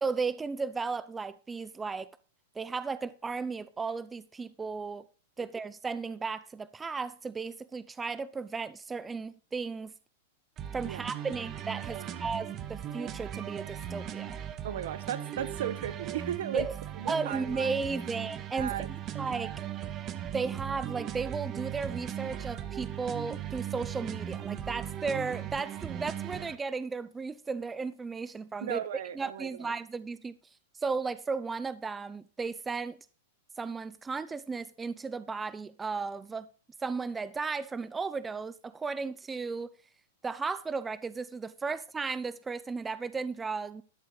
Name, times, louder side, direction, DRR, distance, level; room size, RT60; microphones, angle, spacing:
voice 1, 0.0-2.1 2.6-5.1 5.4-9.9 10.7-14.4 16.5-16.7 17.1-18.9 19.2-19.5 20.3-28.8 29.1-30.4 30.7-33.0 33.6-36.5 36.8-39.7 40.2-43.8, right 4 dB, 15° right, 0.5 m, -35 dB
sound 1, 10.6-26.6, right 10 dB, 35° right, 1.0 m, -38 dB
voice 2, 14.6-16.7 17.0-17.7 18.5-18.9 28.6-29.7, right 10 dB, 70° right, 1.1 m, -36 dB
12.5 x 6.4 x 5.0 m
hypercardioid pair, 115°, 0 cm